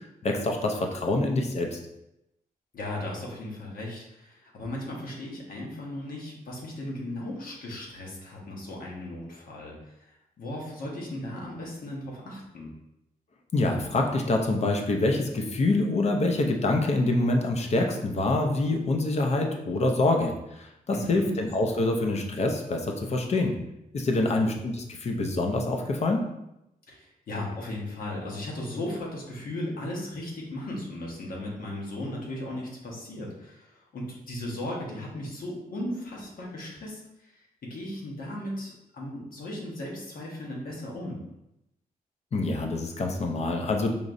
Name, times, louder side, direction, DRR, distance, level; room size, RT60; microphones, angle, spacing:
voice 1, 0.2-1.8 13.5-23.5 23.9-26.2 42.3-43.9, left 2 dB, 45° left, 3 dB, 0.6 m, -26 dB
voice 2, 2.7-10.1 10.4-12.7 20.9-21.3 24.3-24.5 26.9-37.3 37.6-41.2, left 1 dB, 70° left, -3 dB, 1.2 m, -36 dB
5.1 x 2.9 x 2.6 m, 0.87 s
wide cardioid pair, 135°, 15 cm